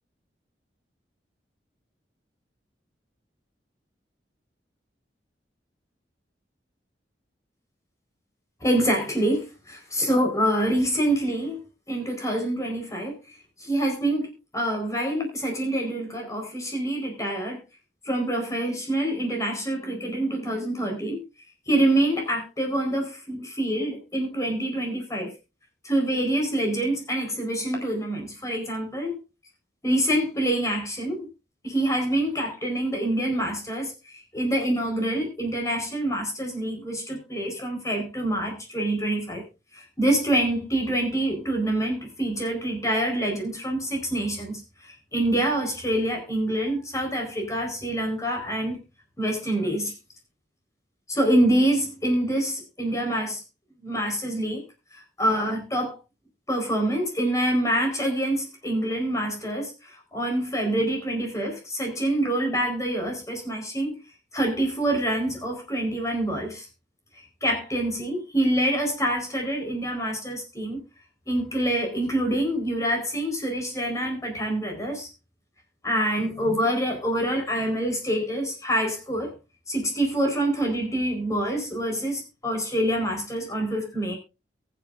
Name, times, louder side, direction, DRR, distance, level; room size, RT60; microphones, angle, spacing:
voice 1, 8.6-13.2 13.6-17.6 18.0-21.2 21.7-25.3 25.8-29.2 29.8-31.3 31.6-39.4 39.7-48.8 49.2-49.9 51.1-53.4 53.8-54.6 54.9-56.0 56.5-64.0 64.3-66.7 67.1-70.8 71.3-75.1 75.8-79.3 79.7-84.2, right 1 dB, 20° left, 4.4 m, -26 dB
22.5 x 7.8 x 2.6 m
head